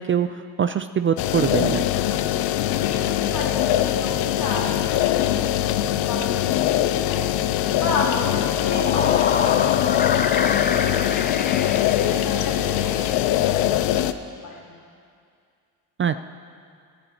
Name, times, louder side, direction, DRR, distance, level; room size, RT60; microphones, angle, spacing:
voice 1, 0.0-1.8 16.0-16.2, right 8 dB, 30° right, 11 dB, 0.4 m, -23 dB
sound 1, 1.2-14.1, left 12 dB, 85° left, 0.6 m, -22 dB
voice 2, 2.7-5.8 6.1-14.8, left 2 dB, 60° left, -5 dB, 3.7 m, -33 dB
sound 2, 8.6-12.8, left 4 dB, 25° left, 0.7 m, -28 dB
22.5 x 11.5 x 2.9 m, 2.2 s
cardioid pair, 80°, 40 cm